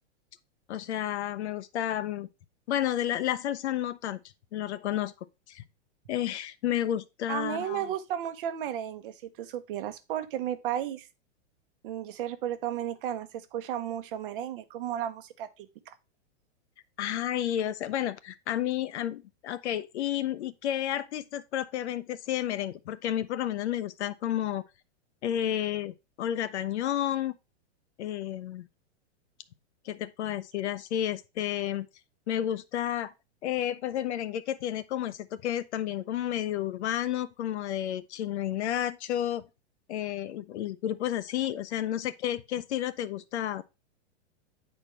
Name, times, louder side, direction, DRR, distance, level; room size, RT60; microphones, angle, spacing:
voice 1, 0.7-2.3 2.7-4.2 4.5-5.1 5.5-5.6 6.1-7.9 17.0-24.6 25.2-27.3 28.0-28.7 29.8-31.9 32.3-33.1 33.4-39.4 39.9-43.6, left 11 dB, 70° left, 0.8 m, -31 dB
voice 2, 7.3-11.1 11.8-15.9, right 11 dB, 50° right, 0.9 m, -34 dB
8.7 x 4.4 x 3.2 m
hypercardioid pair, 150°, 35 cm